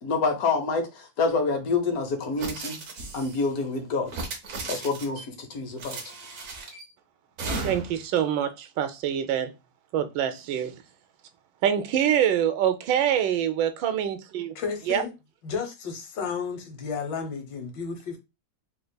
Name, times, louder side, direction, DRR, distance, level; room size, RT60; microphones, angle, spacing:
voice 1, 0.0-2.8 3.1-4.1 4.7-6.0, left 4 dB, 60° left, 1.1 m, -27 dB
sound 1, 2.4-3.4 4.1-5.2 5.8-6.8 7.4-8.0, right 3 dB, 55° right, 1.1 m, -35 dB
voice 2, 7.6-9.5 9.9-10.7 11.6-14.5 14.9-15.0, right 9 dB, 90° right, 1.3 m, -25 dB
voice 3, 14.5-15.1 15.4-18.2, left 5 dB, 80° left, 1.5 m, -32 dB
4.4 x 2.9 x 2.2 m
omnidirectional pair, 1.9 m